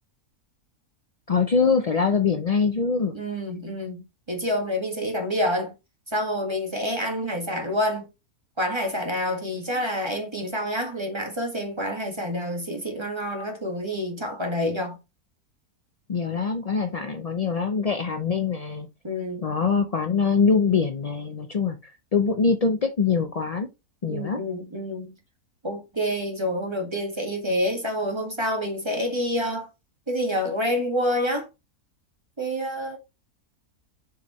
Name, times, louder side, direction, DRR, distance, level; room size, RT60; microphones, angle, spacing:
voice 1, 1.3-3.2 16.1-18.9 19.4-23.7 24.0-24.4, left 5 dB, 70° left, 0.3 m, -23 dB
voice 2, 3.1-4.0 4.3-5.7 6.1-8.1 8.6-15.0 19.0-19.5 24.1-25.1 25.6-29.7 30.1-31.5 32.4-33.0, equal, 20° right, 1.8 m, -28 dB
6.8 x 4.8 x 3.1 m
omnidirectional pair, 1.6 m